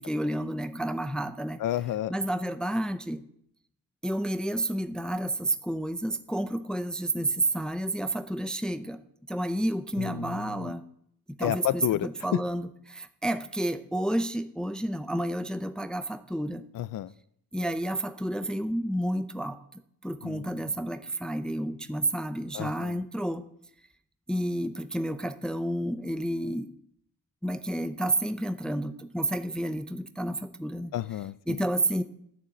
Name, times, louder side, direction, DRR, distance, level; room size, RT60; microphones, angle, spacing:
voice 1, 0.0-1.6 2.1-3.2 4.0-9.0 9.3-10.8 11.4-16.6 17.5-19.6 20.0-23.4 24.3-26.7 27.4-30.9 31.5-32.0, right 1 dB, ahead, 10 dB, 0.6 m, -30 dB
voice 2, 1.6-2.1 10.0-10.7 11.4-12.4 16.7-17.1 20.2-20.7 22.5-23.0 30.9-31.6, left 12 dB, 50° left, 17 dB, 0.5 m, -31 dB
12.5 x 7.0 x 9.1 m, 0.71 s
cardioid pair, 120°, 42 cm